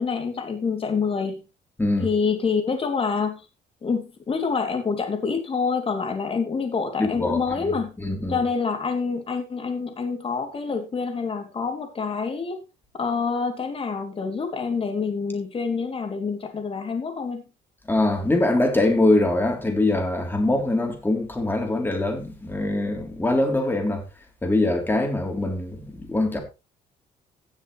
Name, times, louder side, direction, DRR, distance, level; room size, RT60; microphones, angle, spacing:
voice 1, 0.0-1.4 2.0-3.4 3.8-7.9 8.3-12.6 12.9-17.4, left 5 dB, 35° left, 3.0 m, -26 dB
voice 2, 7.0-7.4 8.0-8.4 17.9-24.0 24.4-26.4, left 2 dB, 10° left, 3.6 m, -23 dB
17.0 x 7.2 x 3.3 m
cardioid pair, 110°, 17 cm